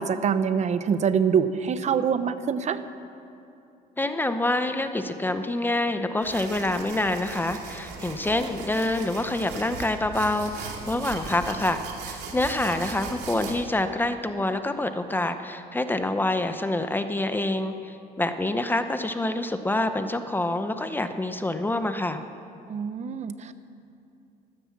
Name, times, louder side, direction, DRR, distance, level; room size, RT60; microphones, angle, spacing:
voice 1, 0.0-2.8 22.7-23.5, right 7 dB, 45° right, 12 dB, 0.8 m, -25 dB
voice 2, 4.0-22.2, left 2 dB, 10° left, 9 dB, 0.8 m, -27 dB
sound 1, 6.2-13.5, right 4 dB, 80° right, 2.5 m, -38 dB
14.5 x 13.0 x 7.3 m, 2.6 s
cardioid pair, 110°, 17 cm